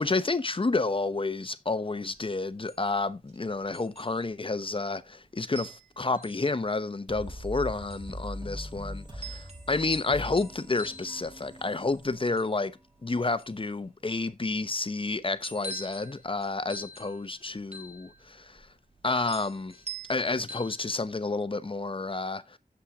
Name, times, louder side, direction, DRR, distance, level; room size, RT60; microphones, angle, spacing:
voice 1, 0.0-12.7 13.0-18.7 19.0-19.8 20.1-22.6, left 3 dB, 35° left, 0.9 m, -30 dB
sound 1, 2.1-21.3, right 2 dB, 45° right, 2.0 m, -47 dB
sound 2, 7.1-12.7, equal, 30° right, 2.2 m, -41 dB
10.0 x 7.4 x 3.7 m
wide cardioid pair, 80°, 15 cm